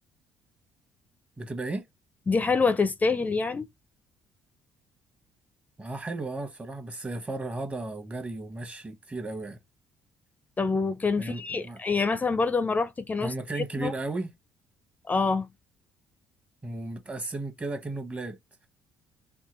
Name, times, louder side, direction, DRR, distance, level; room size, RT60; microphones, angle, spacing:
voice 1, 1.4-1.8 5.8-9.6 11.2-11.8 13.2-14.3 16.6-18.4, right 2 dB, 25° right, 1.1 m, -34 dB
voice 2, 2.3-3.7 10.6-13.9 15.0-15.5, left 4 dB, 25° left, 0.5 m, -26 dB
3.6 x 2.7 x 3.0 m
hypercardioid pair, 55°, 6 cm